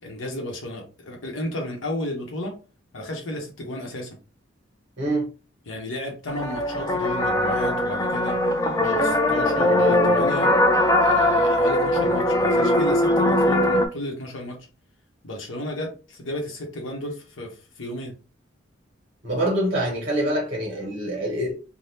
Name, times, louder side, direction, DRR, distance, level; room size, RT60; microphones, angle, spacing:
voice 1, 0.0-2.6 2.9-4.2 5.7-8.4 8.8-10.5 10.9-14.6 15.2-18.2, left 1 dB, 80° left, 0.9 m, -33 dB
voice 2, 5.0-5.3 19.2-21.6, right 1 dB, 40° right, 0.9 m, -25 dB
sound 1, 6.3-13.9, left 1 dB, 15° left, 0.4 m, -20 dB
3.4 x 2.2 x 2.7 m
head